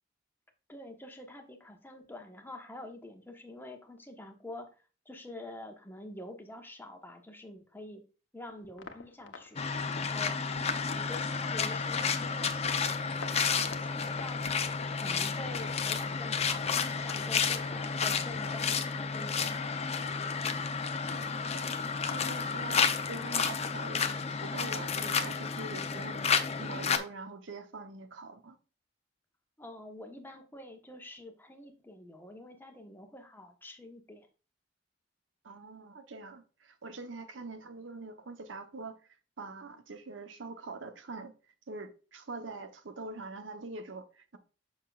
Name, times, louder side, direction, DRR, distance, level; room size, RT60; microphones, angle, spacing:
voice 1, 0.7-4.7 5.0-8.0 8.3-9.6 10.0-12.7 13.2-14.4 15.0-19.7 29.6-34.3, left 1 dB, 10° left, 1.2 m, -47 dB
sound 1, 8.6-18.5, left 3 dB, 80° left, 1.1 m, -49 dB
sound 2, 9.6-27.0, left 5 dB, 35° left, 0.7 m, -31 dB
voice 2, 20.9-21.7 22.1-26.3 26.6-28.6 35.4-41.3 41.7-44.4, right 3 dB, 90° right, 1.0 m, -44 dB
7.5 x 6.3 x 2.5 m
head